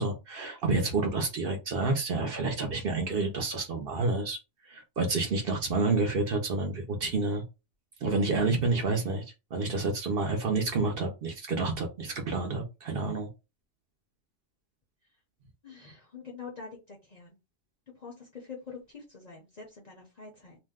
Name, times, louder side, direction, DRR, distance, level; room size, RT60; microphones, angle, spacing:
voice 1, 0.0-4.4 4.7-7.4 8.0-9.2 9.5-13.3, right 3 dB, 55° right, 3 dB, 0.8 m, -29 dB
voice 2, 15.6-17.4 17.9-20.6, left 5 dB, 45° left, -1 dB, 0.6 m, -45 dB
2.6 x 2.1 x 3.4 m, 0.27 s
omnidirectional pair, 1.3 m